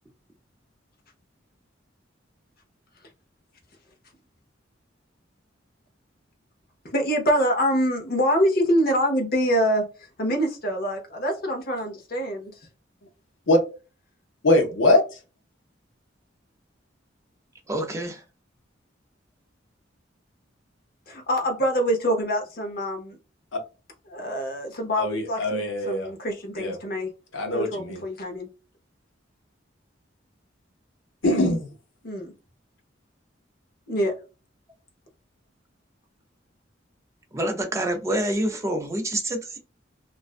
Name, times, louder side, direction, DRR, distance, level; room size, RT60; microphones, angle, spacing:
voice 1, 6.8-9.8 10.2-12.5 21.1-23.2 24.1-27.1 27.5-28.5 32.0-32.3 33.9-34.1, equal, 50° left, 0.7 m, -25 dB
voice 2, 14.4-15.0 23.5-23.6 25.0-26.1 26.6-26.8 27.3-28.0 31.2-31.7, left 1 dB, 80° left, 0.8 m, -22 dB
voice 3, 17.7-18.2 37.3-39.6, right 1 dB, 15° right, 0.4 m, -27 dB
2.5 x 2.2 x 2.4 m
head